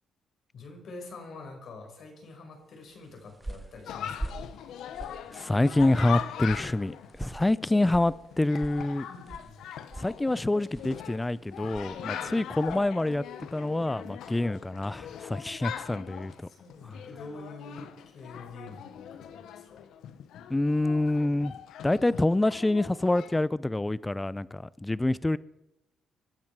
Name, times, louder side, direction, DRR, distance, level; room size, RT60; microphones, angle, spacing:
voice 1, 0.5-4.5 9.1-9.6 11.9-12.3 14.4-14.5 15.6-15.7 16.5-19.8, left 3 dB, 60° left, 5.4 m, -46 dB
sound 1, 2.9-13.0, right 2 dB, 15° right, 1.6 m, -45 dB
Chatter, 3.9-23.5, left 9 dB, 80° left, 1.0 m, -41 dB
voice 2, 5.3-9.1 10.0-16.3 20.5-21.6 21.8-25.4, left 2 dB, 15° left, 0.5 m, -27 dB
24.0 x 12.5 x 4.7 m
cardioid pair, 90°, 0 cm